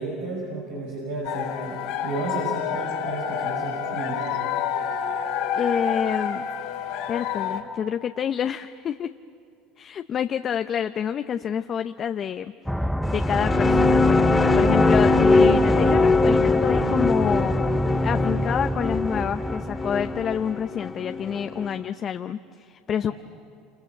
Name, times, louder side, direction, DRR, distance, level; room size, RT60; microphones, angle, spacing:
voice 1, 0.0-4.2, right 2 dB, 85° right, -4 dB, 6.2 m, -32 dB
sound 1, 1.2-7.6, left 7 dB, 70° left, 2.7 m, -28 dB
voice 2, 5.6-6.5 7.1-9.1 9.8-12.5 13.0-14.2 14.5-17.6 18.0-23.1, left 8 dB, 40° left, 9 dB, 0.7 m, -28 dB
sound 2, 12.7-20.5, equal, ahead, 0.6 m, -27 dB
sound 3, 13.0-21.7, left 3 dB, 20° left, 2.0 m, -21 dB
28.0 x 28.0 x 7.3 m, 2.5 s
hypercardioid pair, 90°, 0 cm